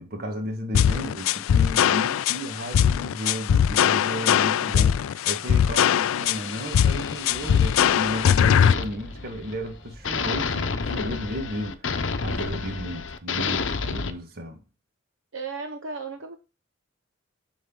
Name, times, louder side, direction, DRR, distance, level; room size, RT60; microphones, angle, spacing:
voice 1, 0.0-14.6, equal, 50° right, 1.5 m, -34 dB
sound 1, 0.7-8.7, left 8 dB, 90° left, 0.3 m, -21 dB
sound 2, 6.1-9.7 10.0-14.1, left 5 dB, 65° left, 0.8 m, -31 dB
sound 3, 7.3-12.1, equal, ahead, 1.4 m, -46 dB
voice 2, 15.3-16.4, right 4 dB, 70° right, 0.8 m, -34 dB
7.8 x 6.5 x 3.8 m
head